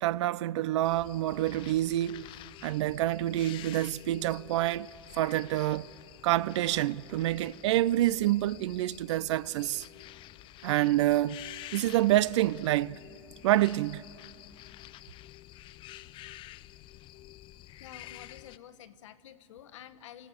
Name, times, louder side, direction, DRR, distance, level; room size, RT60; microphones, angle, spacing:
voice 1, 0.0-2.3 2.6-4.9 5.1-5.9 6.2-9.9 10.6-11.4 11.7-13.0 13.4-14.0, right 14 dB, 60° right, 0.4 m, -27 dB
sound 1, 0.8-18.6, left 15 dB, 30° left, 0.4 m, -49 dB
voice 2, 17.8-20.3, left 10 dB, 65° left, 1.1 m, -50 dB
28.0 x 15.0 x 7.0 m
hypercardioid pair, 105°, 17 cm